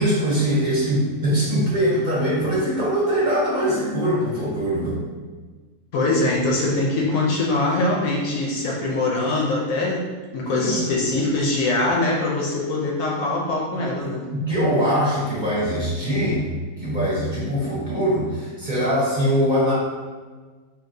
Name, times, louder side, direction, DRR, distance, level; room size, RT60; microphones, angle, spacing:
voice 1, 0.0-5.0 10.4-10.9 14.0-16.5 16.8-19.7, equal, 35° right, -8 dB, 0.9 m, -22 dB
voice 2, 5.9-10.1 10.3-14.3, left 2 dB, 70° left, -2 dB, 0.9 m, -23 dB
4.5 x 2.8 x 2.6 m, 1.4 s
omnidirectional pair, 1.6 m